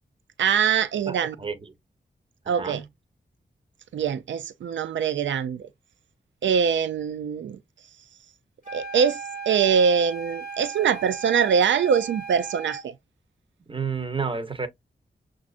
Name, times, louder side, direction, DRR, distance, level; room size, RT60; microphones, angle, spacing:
voice 1, 0.4-1.4 2.5-2.8 3.9-5.7 6.4-7.6 8.7-9.2 9.5-12.9, right 7 dB, 90° right, 0.4 m, -23 dB
voice 2, 1.1-1.7 2.4-2.9 13.7-14.7, right 5 dB, 25° right, 1.0 m, -31 dB
sound 1, 8.6-12.9, right 4 dB, 45° right, 1.4 m, -37 dB
6.1 x 2.5 x 2.4 m
cardioid pair, 50°, 19 cm